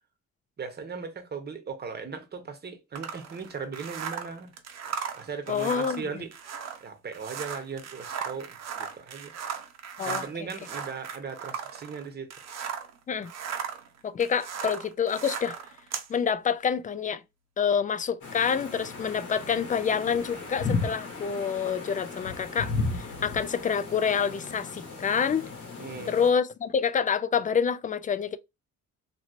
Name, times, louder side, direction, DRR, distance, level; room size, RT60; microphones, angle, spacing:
voice 1, 0.6-4.5 5.1-6.5 6.8-9.3 10.0-12.3 25.8-26.2, right 5 dB, 35° right, 0.9 m, -38 dB
sound 1, 2.9-12.9 13.2-16.1, right 7 dB, 60° right, 0.8 m, -37 dB
voice 2, 5.5-6.0 10.0-10.3 13.1-13.3 14.0-15.6 16.1-17.2 17.6-25.5 26.1-28.4, left 7 dB, 25° left, 0.3 m, -27 dB
sound 2, 18.2-26.3, left 4 dB, 85° left, 1.5 m, -35 dB
2.9 x 2.9 x 2.5 m
cardioid pair, 90°, 30 cm